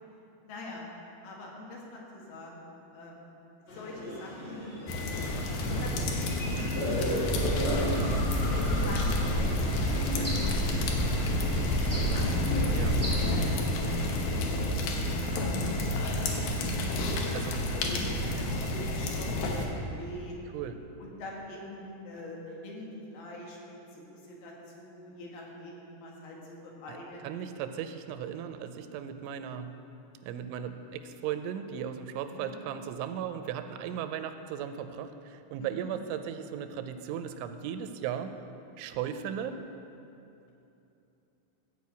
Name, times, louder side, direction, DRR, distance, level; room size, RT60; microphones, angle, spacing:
voice 1, 0.5-0.8 1.2-3.3 3.7-4.7 5.7-7.3 7.7-8.1 8.4-14.6 15.4-16.0 17.0-20.4 21.0-27.2 32.2-32.5 35.6-35.9, left 1 dB, 90° left, -2 dB, 4.3 m, -44 dB
sound 1, 3.7-9.4, equal, 40° left, 1.6 m, -36 dB
sound 2, 4.9-19.7, left 1 dB, 75° left, 2.2 m, -30 dB
sound 3, 7.2-13.4, equal, 10° left, 0.8 m, -30 dB
voice 2, 7.8-8.2 12.7-13.0 17.3-17.6 18.3-18.5 20.5-20.7 26.9-27.0 27.2-29.8 30.2-38.4 38.8-39.6, right 9 dB, 85° right, 8 dB, 3.0 m, -37 dB
14.5 x 5.0 x 8.2 m, 2.8 s
omnidirectional pair, 5.4 m